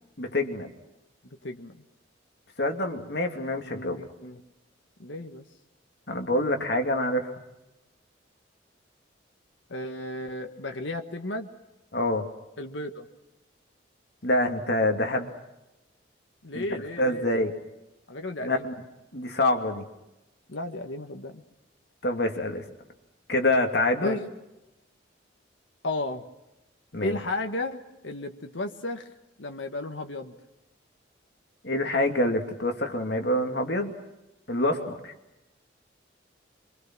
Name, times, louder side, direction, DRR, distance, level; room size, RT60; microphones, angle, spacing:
voice 1, 0.2-0.7 2.6-4.0 6.1-7.3 11.9-12.3 14.2-15.3 16.5-17.5 18.4-18.7 19.1-19.8 22.0-22.6 23.3-24.2 26.9-27.2 31.6-33.9 34.5-35.1, left 1 dB, 60° left, 4 dB, 2.7 m, -26 dB
voice 2, 1.2-1.8 3.6-4.4 5.0-5.4 9.7-11.5 12.6-13.1 16.4-17.5 18.1-18.7 20.5-21.4 24.0-24.2 25.8-26.2 27.0-29.1 29.4-30.3 34.8-35.0, left 2 dB, 75° left, 4 dB, 1.6 m, -34 dB
26.0 x 25.0 x 6.1 m, 0.95 s
head